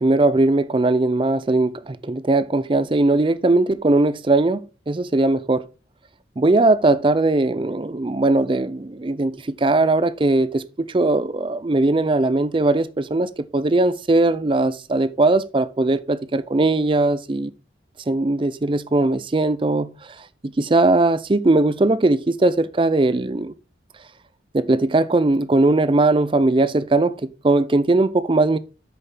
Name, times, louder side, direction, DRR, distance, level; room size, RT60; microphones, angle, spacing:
voice 1, 0.0-5.6 6.4-17.5 18.1-20.2 20.4-23.5 24.5-28.6, right 2 dB, 25° right, 0.4 m, -19 dB
8.6 x 6.8 x 3.8 m
head